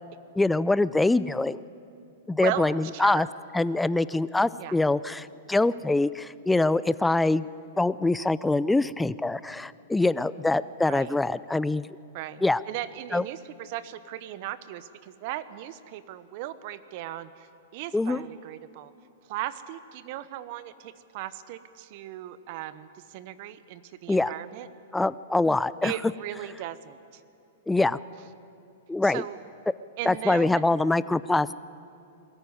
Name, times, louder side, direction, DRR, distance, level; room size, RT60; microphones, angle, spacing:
voice 1, 0.4-1.6 2.3-3.3 3.5-7.5 7.8-11.9 12.4-12.6 13.1-13.2 17.9-18.2 24.1-24.3 24.9-25.9 27.7-28.0 28.9-29.2 30.1-31.5, left 2 dB, 5° left, 18 dB, 0.5 m, -24 dB
voice 2, 2.4-3.3 4.6-4.8 10.9-11.2 12.1-18.9 19.3-24.7 25.8-27.2 29.0-29.4 30.0-30.6, right 13 dB, 50° right, 14 dB, 1.0 m, -37 dB
21.0 x 14.0 x 9.7 m, 2.6 s
hypercardioid pair, 115°, 0 cm